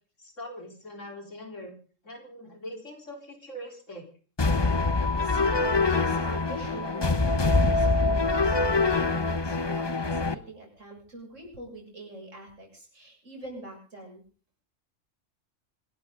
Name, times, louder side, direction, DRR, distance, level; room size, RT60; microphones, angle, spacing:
voice 1, 0.2-1.8 2.0-4.0, equal, 75° left, 3 dB, 4.4 m, -42 dB
sound 1, 4.4-10.3, left 3 dB, 25° left, 0.8 m, -24 dB
voice 2, 5.1-14.2, right 1 dB, 75° right, 0 dB, 7.5 m, -44 dB
26.0 x 12.5 x 3.9 m, 0.38 s
omnidirectional pair, 1.3 m